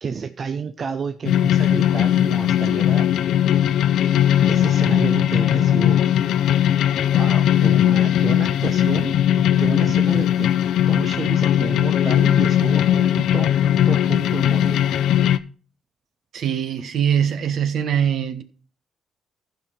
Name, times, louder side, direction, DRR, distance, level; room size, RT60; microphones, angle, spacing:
voice 1, 0.0-3.1 4.5-6.0 7.1-10.5 10.9-14.8, right 5 dB, 45° right, 0.6 m, -31 dB
sound 1, 1.2-15.4, left 11 dB, 80° left, 0.5 m, -18 dB
voice 2, 16.3-18.4, right 8 dB, 65° right, 1.2 m, -22 dB
14.5 x 5.2 x 4.3 m
cardioid pair, 90°, 0 cm